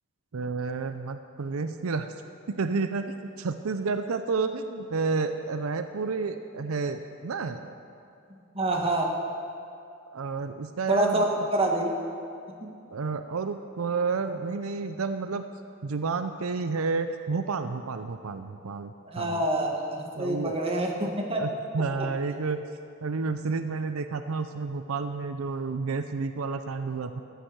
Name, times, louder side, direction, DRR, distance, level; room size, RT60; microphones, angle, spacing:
voice 1, 0.3-2.1 2.5-7.7 10.1-11.5 12.9-15.4 15.8-19.4 20.1-20.6 21.3-22.6 23.0-27.2, right 4 dB, 85° right, 9 dB, 0.6 m, -30 dB
voice 2, 8.5-9.1 10.9-11.9 12.6-12.7 19.1-21.4, right 1 dB, 30° right, 1 dB, 1.6 m, -26 dB
14.5 x 9.1 x 6.6 m, 2.5 s
head